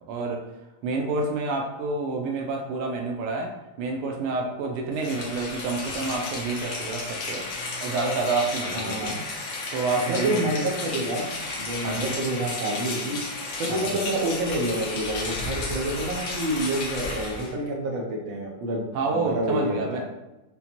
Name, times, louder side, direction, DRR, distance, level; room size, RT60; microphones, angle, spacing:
voice 1, 0.1-0.4 0.8-3.5 3.8-7.5 7.8-9.1 9.7-10.4 11.8-12.2 13.7-14.0 18.9-20.0, right 3 dB, 90° right, 1 dB, 1.5 m, -28 dB
Rain, 4.9-17.5, left 3 dB, 70° left, 1.5 m, -33 dB
voice 2, 8.7-9.2 10.1-13.2 13.6-18.8 19.1-20.0, right 1 dB, 70° right, -1 dB, 1.4 m, -28 dB
5.3 x 2.1 x 2.9 m, 1.0 s
omnidirectional pair, 2.4 m